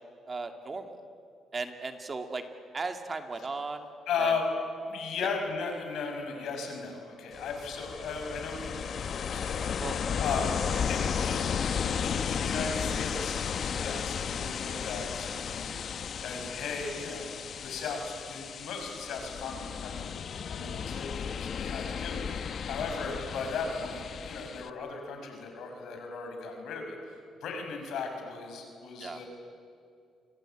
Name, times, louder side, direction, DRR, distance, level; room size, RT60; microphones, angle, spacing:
voice 1, 0.3-1.0 1.5-2.5 2.7-3.9 4.2-4.3 5.2-5.3 9.8-10.0 29.0-29.2, right 3 dB, 30° right, 6 dB, 2.3 m, -36 dB
voice 2, 4.1-4.4 4.8-9.7 10.2-10.5 10.9-15.7 16.2-27.0 27.4-29.3, left 5 dB, 75° left, 4 dB, 6.0 m, -36 dB
Ocean, 7.3-24.7, left 7 dB, 55° left, 1.0 m, -34 dB
28.5 x 22.0 x 9.1 m, 2.4 s
cardioid pair, 90°, 0 cm